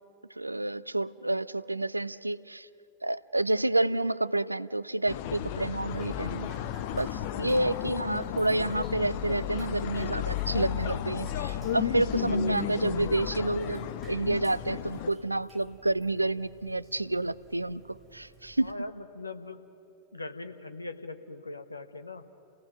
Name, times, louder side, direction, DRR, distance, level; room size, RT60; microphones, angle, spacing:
voice 1, 0.4-2.7 3.0-6.5 6.9-18.7, right 2 dB, 85° right, 18 dB, 0.4 m, -29 dB
sound 1, 5.1-15.1, left 11 dB, 50° left, 0.9 m, -34 dB
Drip, 5.9-18.7, right 5 dB, 20° right, 3.0 m, -55 dB
voice 2, 18.6-19.6 20.1-22.2, left 2 dB, 80° left, 8 dB, 1.1 m, -41 dB
29.0 x 17.5 x 6.4 m, 2.8 s
figure-of-eight pair, 90°, 0 cm